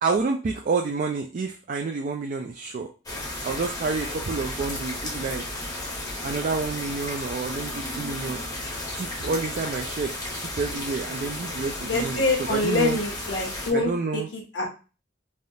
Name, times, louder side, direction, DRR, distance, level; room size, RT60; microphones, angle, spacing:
voice 1, 0.0-2.9 3.4-5.4 6.2-8.4 8.9-10.1 10.6-13.0 13.7-14.3, right 4 dB, 45° right, 3 dB, 0.3 m, -29 dB
sound 1, 3.1-13.7, left 1 dB, 20° left, 0.7 m, -33 dB
voice 2, 11.8-14.7, left 2 dB, 70° left, -1 dB, 1.0 m, -26 dB
3.4 x 2.4 x 2.6 m, 0.34 s
head